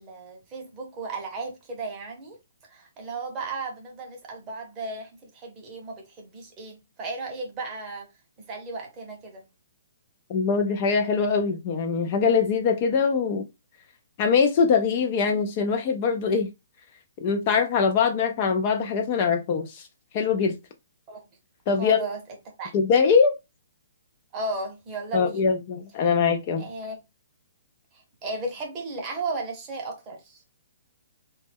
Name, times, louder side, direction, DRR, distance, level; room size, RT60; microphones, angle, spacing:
voice 1, 0.0-2.4 2.7-8.1 8.4-9.4 21.1-21.2 21.8-22.2 22.6-22.7 24.3-25.5 26.6-27.0 28.2-30.4, right 3 dB, 20° right, 0.7 m, -35 dB
voice 2, 10.3-13.5 14.2-16.5 17.2-19.9 20.1-20.6 21.7-22.0 22.7-23.3 25.1-26.7, left 5 dB, 35° left, 0.3 m, -22 dB
2.1 x 2.1 x 3.3 m
hypercardioid pair, 160°, 0 cm